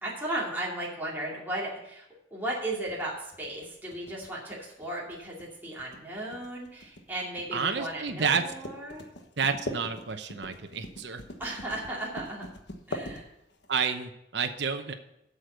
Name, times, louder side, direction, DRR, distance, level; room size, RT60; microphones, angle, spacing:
voice 1, 0.0-2.0 2.3-9.0 11.4-12.4 12.9-13.3, right 1 dB, 10° right, -5 dB, 2.5 m, -35 dB
sound 1, 2.7-13.7, left 1 dB, 65° left, 1.3 m, -42 dB
voice 2, 7.5-8.4 9.4-11.2 13.7-14.9, right 6 dB, 65° right, 6 dB, 0.8 m, -29 dB
8.0 x 6.6 x 7.9 m, 0.83 s
head